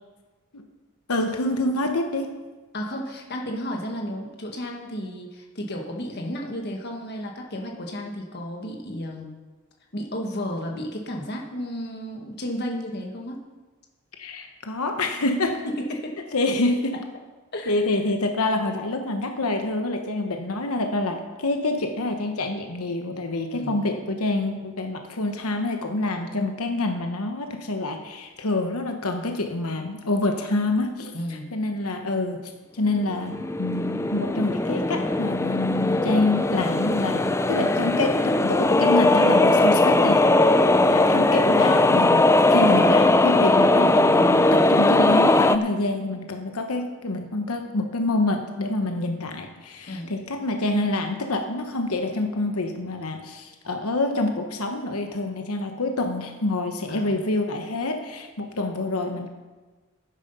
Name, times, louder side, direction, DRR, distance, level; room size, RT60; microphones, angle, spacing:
voice 1, 1.1-2.3 14.2-15.6 16.3-16.9 17.7-31.1 31.5-37.2 37.5-59.3, left 2 dB, 90° left, 5 dB, 1.1 m, -27 dB
voice 2, 2.7-9.3 9.9-13.4 15.6-16.5 17.5-17.8 23.5-24.0 31.1-31.5 49.9-50.2 56.9-57.2, equal, 50° left, 1 dB, 1.7 m, -33 dB
sound 1, 33.1-45.6, left 2 dB, 10° left, 0.3 m, -19 dB
12.0 x 9.8 x 5.6 m, 1.3 s
head